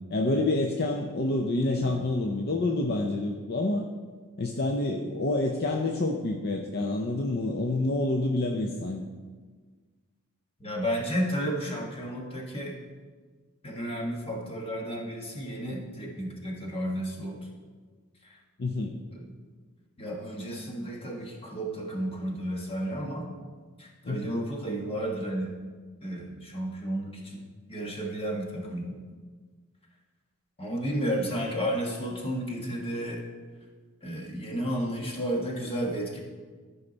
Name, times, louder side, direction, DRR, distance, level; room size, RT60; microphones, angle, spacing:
voice 1, 0.1-3.9 4.4-9.0 18.6-19.0 24.0-24.3, left 2 dB, 45° left, 2 dB, 0.6 m, -28 dB
voice 2, 10.6-12.8 13.6-17.4 18.2-18.3 19.1-19.2 20.0-23.3 23.8-25.5 26.0-29.0 30.6-33.2 34.0-36.2, equal, 25° left, 0 dB, 1.5 m, -32 dB
13.0 x 5.6 x 4.0 m, 1.5 s
head